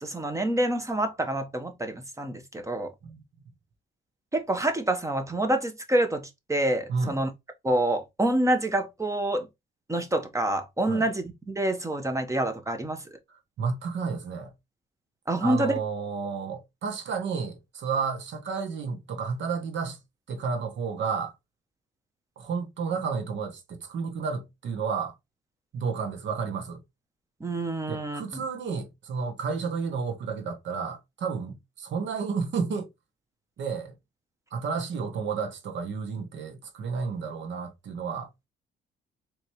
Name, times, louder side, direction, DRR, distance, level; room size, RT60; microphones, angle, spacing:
voice 1, 0.0-2.9 4.3-7.3 7.6-9.5 9.9-13.0 15.3-15.8 27.4-28.4, right 1 dB, 15° right, 1.1 m, -27 dB
voice 2, 3.0-3.4 6.9-7.1 10.8-11.1 13.6-14.5 15.4-20.0 20.3-21.3 22.4-25.1 25.7-26.8 27.9-32.9 33.6-33.9 34.5-38.3, right 5 dB, 65° right, 1.2 m, -31 dB
4.1 x 3.1 x 3.0 m
cardioid pair, 90°, 20 cm